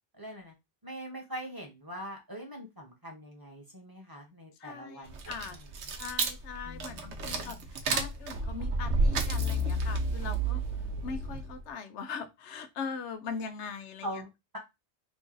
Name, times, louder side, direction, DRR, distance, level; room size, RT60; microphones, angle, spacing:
voice 1, 0.1-0.5 0.8-5.7 6.6-7.7 14.0-14.6, equal, 20° right, 1.0 m, -43 dB
voice 2, 4.6-5.6 6.0-10.6 11.0-14.2, left 5 dB, 85° left, 0.9 m, -40 dB
sound 1, 5.1-11.6, right 2 dB, 80° right, 0.9 m, -31 dB
3.1 x 2.5 x 3.7 m
omnidirectional pair, 1.1 m